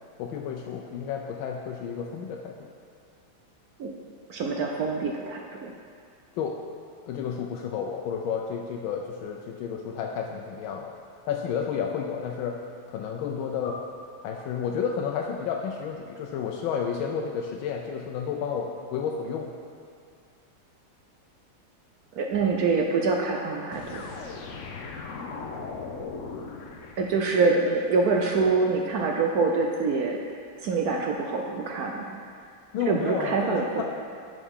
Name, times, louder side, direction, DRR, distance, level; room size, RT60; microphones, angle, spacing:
voice 1, 0.2-2.7 6.4-6.5 7.1-10.9 11.3-12.5 12.9-13.8 14.2-19.5 32.7-33.8, left 7 dB, 90° left, 1 dB, 1.4 m, -31 dB
voice 2, 4.3-5.7 22.2-24.0 27.0-30.2 30.6-32.2 32.9-33.8, right 4 dB, 70° right, 1 dB, 0.9 m, -25 dB
sound 1, 23.7-27.7, left 4 dB, 65° left, 0.7 m, -38 dB
11.0 x 6.8 x 3.6 m, 2.3 s
omnidirectional pair, 2.1 m